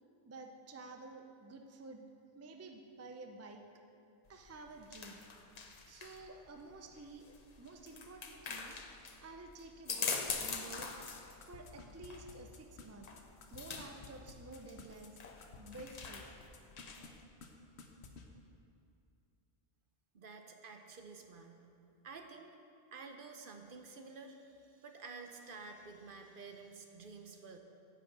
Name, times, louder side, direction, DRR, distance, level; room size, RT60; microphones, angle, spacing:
voice 1, 0.3-2.1 2.3-3.6 4.3-5.3 5.9-8.8 9.2-10.9 11.5-13.1 13.5-15.2 15.6-16.3, right 2 dB, 20° right, 4 dB, 0.4 m, -51 dB
sound 1, 4.3-17.2, left 5 dB, 45° left, 0.7 m, -44 dB
sound 2, 10.3-16.1 16.4-17.1 17.4-17.5 17.8-18.2, left 5 dB, 85° left, 1.1 m, -53 dB
voice 2, 20.1-21.7 22.0-22.5 22.9-27.6, right 4 dB, 60° right, 5 dB, 0.9 m, -51 dB
10.5 x 5.0 x 7.9 m, 2.6 s
omnidirectional pair, 1.1 m